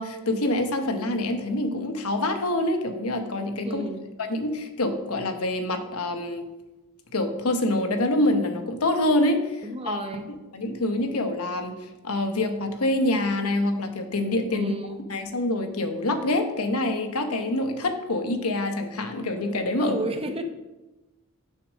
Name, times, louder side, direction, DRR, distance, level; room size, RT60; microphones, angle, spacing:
voice 1, 0.0-3.8 4.3-6.4 7.1-10.0 10.5-11.8 12.0-14.7 15.1-20.0, left 1 dB, 75° left, 6 dB, 1.1 m, -26 dB
voice 2, 3.6-4.1 9.6-10.3 14.5-15.1 19.8-20.4, right 1 dB, 25° right, 6 dB, 0.9 m, -32 dB
7.0 x 6.7 x 6.3 m, 1.1 s
head